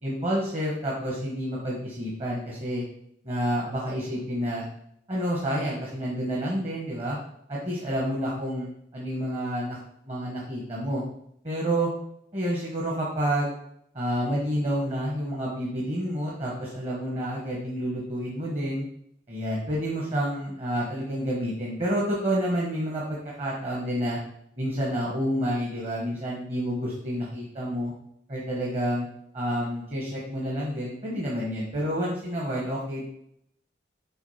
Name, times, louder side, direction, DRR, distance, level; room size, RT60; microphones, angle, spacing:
voice 1, 0.0-2.8 3.2-4.6 5.1-7.2 7.5-8.7 8.9-9.8 10.0-11.0 11.4-11.9 12.3-13.5 13.9-18.8 19.3-24.2 24.6-27.9 28.3-29.1 29.3-33.1, equal, 35° right, -3 dB, 1.3 m, -29 dB
6.2 x 3.7 x 5.6 m, 0.72 s
head